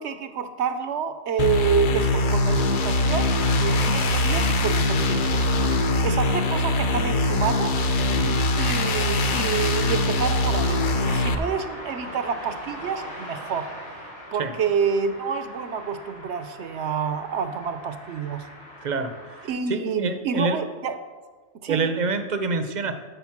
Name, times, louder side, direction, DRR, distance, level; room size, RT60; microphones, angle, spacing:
voice 1, 0.0-7.8 8.6-13.7 14.3-18.4 19.5-21.0 21.6-21.9, right 6 dB, 75° right, 10 dB, 1.0 m, -28 dB
sound 1, 1.4-11.3, left 1 dB, 55° left, 0.7 m, -22 dB
sound 2, 2.1-19.5, equal, 90° left, 4.0 m, -37 dB
voice 2, 18.8-20.6 21.7-22.9, right 4 dB, 45° right, 8 dB, 0.7 m, -27 dB
12.0 x 5.1 x 5.9 m, 1.4 s
omnidirectional pair, 1.2 m